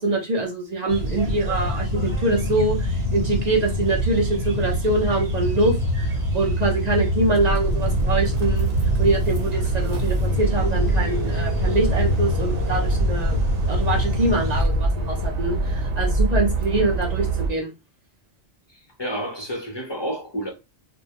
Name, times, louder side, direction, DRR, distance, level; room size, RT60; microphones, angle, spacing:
voice 1, 0.0-8.7 9.0-13.4 13.7-17.7, right 2 dB, 50° right, 0.6 m, -24 dB
sound 1, 0.9-14.6, equal, 70° right, 1.1 m, -25 dB
sound 2, 7.4-17.5, right 2 dB, 85° right, 0.9 m, -25 dB
voice 2, 18.7-20.5, equal, 40° left, 0.4 m, -30 dB
2.1 x 2.1 x 2.8 m
omnidirectional pair, 1.1 m